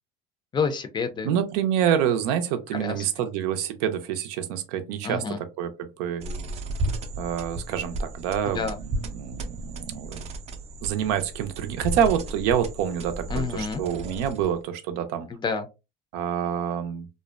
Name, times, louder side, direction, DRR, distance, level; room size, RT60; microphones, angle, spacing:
voice 1, 0.5-1.3 2.7-3.1 5.0-5.4 8.4-8.8 13.3-13.8 15.3-15.7, left 5 dB, 25° left, 0.4 m, -29 dB
voice 2, 1.2-5.2 5.6-6.2 7.2-10.2 10.8-15.3 16.1-17.1, right 9 dB, 90° right, 0.5 m, -27 dB
sound 1, 6.2-14.6, right 1 dB, 35° right, 0.4 m, -34 dB
2.5 x 2.1 x 2.4 m
cardioid pair, 130°, 19 cm